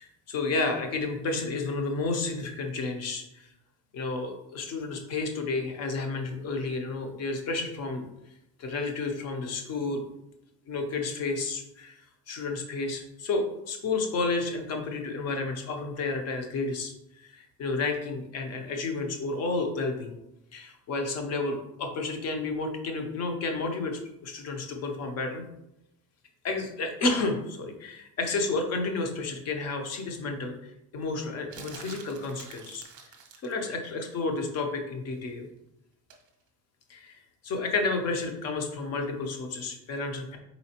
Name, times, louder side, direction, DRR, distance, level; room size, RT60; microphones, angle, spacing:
voice 1, 0.0-3.5 3.9-8.1 8.6-10.0 10.7-12.0 12.3-16.9 17.2-20.2 20.5-25.4 26.4-32.8 33.4-35.5 36.9-37.2 37.4-40.4, left 3 dB, 40° left, 5 dB, 0.6 m, -31 dB
sound 1, 31.5-33.6 36.1-36.3, right 5 dB, 45° right, 0.7 m, -47 dB
4.0 x 3.9 x 2.8 m, 0.84 s
cardioid pair, 180°, 41 cm